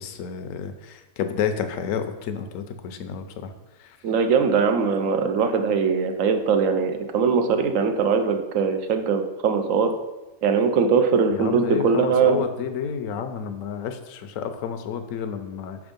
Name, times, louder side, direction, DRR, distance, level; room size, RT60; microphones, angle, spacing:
voice 1, 0.0-3.5 3.8-4.0 5.1-5.2 11.3-15.8, left 7 dB, 75° left, 8 dB, 1.0 m, -30 dB
voice 2, 4.0-9.9 10.4-12.4, right 5 dB, 75° right, 7 dB, 1.0 m, -21 dB
6.0 x 3.5 x 5.1 m, 1.1 s
omnidirectional pair, 1.4 m